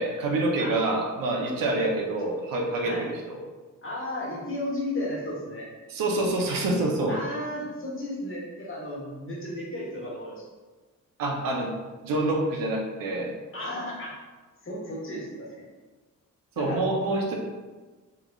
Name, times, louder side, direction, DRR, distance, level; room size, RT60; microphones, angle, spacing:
voice 1, 0.0-3.4 5.9-7.2 11.2-11.7 12.0-13.3 16.6-17.3, right 2 dB, 90° right, 1 dB, 0.6 m, -26 dB
voice 2, 2.7-3.0 3.8-5.7 7.1-10.4 13.5-14.2 14.6-15.6 16.5-16.8, left 1 dB, 40° left, -6 dB, 1.2 m, -34 dB
3.7 x 3.1 x 2.3 m, 1.3 s
cardioid pair, 95°, 33 cm